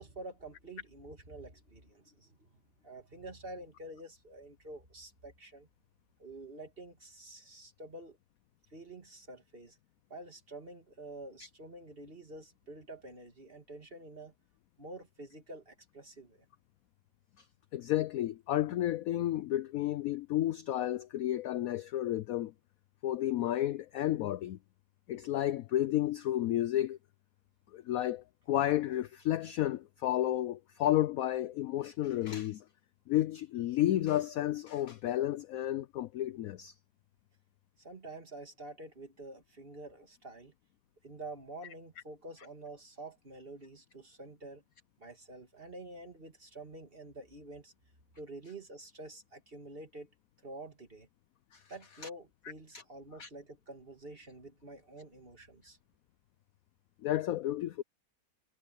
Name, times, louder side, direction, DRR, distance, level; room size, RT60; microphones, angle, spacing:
voice 1, 0.0-5.7 6.2-8.2 8.7-9.8 10.1-14.3 14.8-16.5 37.8-40.5 41.0-44.6 45.0-47.7 48.2-50.1 50.4-51.1 51.7-55.8, right 2 dB, 30° right, 2.7 m, -48 dB
voice 2, 17.7-22.5 23.0-24.6 25.1-27.0 27.7-32.6 33.1-36.7 51.5-51.6 53.2-53.3 57.0-57.8, left 13 dB, 80° left, 0.7 m, -31 dB
omnidirectional pair, 2.0 m